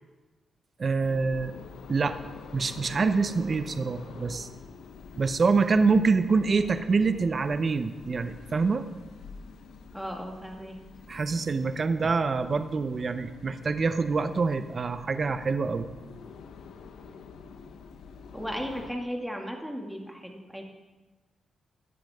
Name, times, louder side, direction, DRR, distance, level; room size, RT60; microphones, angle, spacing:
voice 1, 0.8-1.6 1.9-2.1 2.5-4.5 5.2-8.9 11.1-15.9, right 4 dB, 45° right, 11 dB, 0.7 m, -26 dB
sound 1, 1.0-18.9, left 5 dB, 85° left, 0.9 m, -47 dB
voice 2, 9.9-10.8 18.3-20.6, equal, ahead, 1 dB, 2.2 m, -36 dB
15.0 x 10.5 x 3.6 m, 1.2 s
cardioid pair, 70°, 0 cm